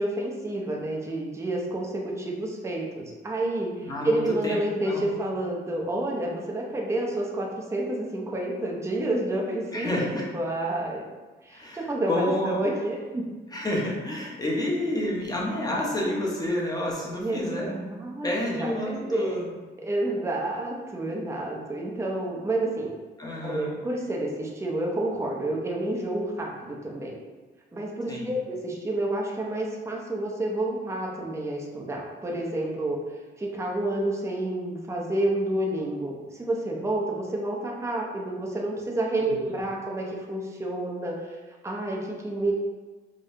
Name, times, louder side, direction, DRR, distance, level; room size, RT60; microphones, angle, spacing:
voice 1, 0.0-10.1 10.3-11.0 11.4-13.3 17.2-19.4 19.8-22.9 23.4-27.1 27.7-33.0 33.4-41.3 41.6-42.5, right 1 dB, 15° right, -2 dB, 0.6 m, -29 dB
voice 2, 3.8-4.6 4.9-5.1 9.7-10.2 11.5-12.6 13.5-17.7 18.2-19.5 23.2-23.7 28.1-28.3 39.2-39.4, left 1 dB, 20° left, -3 dB, 1.0 m, -29 dB
5.1 x 2.2 x 2.7 m, 1.3 s
cardioid pair, 90°, 20 cm